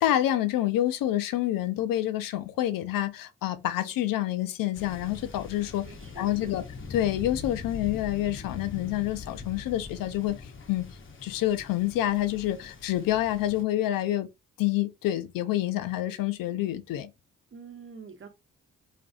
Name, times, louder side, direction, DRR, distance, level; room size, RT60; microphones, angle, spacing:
voice 1, 0.0-5.9 6.2-6.6 6.9-11.0 11.2-14.3 14.6-17.1, left 13 dB, 75° left, 0.5 m, -28 dB
Thunder, 4.7-13.6, left 4 dB, 35° left, 0.8 m, -42 dB
voice 2, 5.9-6.6 17.5-18.3, right 5 dB, 35° right, 0.9 m, -46 dB
2.5 x 2.5 x 2.5 m
supercardioid pair, 50°, 34 cm